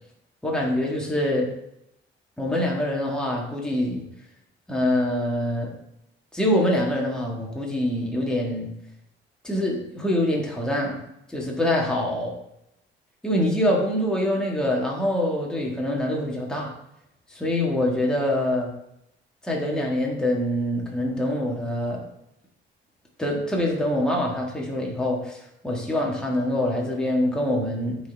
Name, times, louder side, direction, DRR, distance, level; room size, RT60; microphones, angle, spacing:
voice 1, 0.4-1.5 2.4-4.0 4.7-5.7 6.3-8.7 9.4-11.0 11.3-12.3 13.2-16.7 17.3-18.7 19.4-22.0 23.2-28.0, left 1 dB, 5° left, -2 dB, 1.7 m, -25 dB
9.3 x 4.3 x 3.5 m, 0.82 s
cardioid pair, 90°, 20 cm